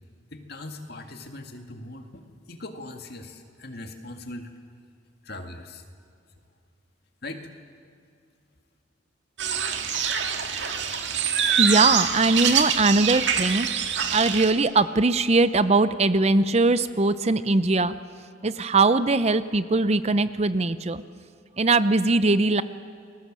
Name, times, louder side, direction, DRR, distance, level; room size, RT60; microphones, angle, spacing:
voice 1, 0.3-4.5 5.2-5.8 7.2-7.5, left 2 dB, 55° left, 5 dB, 2.2 m, -40 dB
sound 1, 9.4-14.5, right 7 dB, 70° right, 2.0 m, -25 dB
voice 2, 11.6-13.7 14.1-17.9 18.4-21.0 21.6-22.6, right 3 dB, 35° right, 13 dB, 0.6 m, -21 dB
29.5 x 20.5 x 7.5 m, 2.3 s
head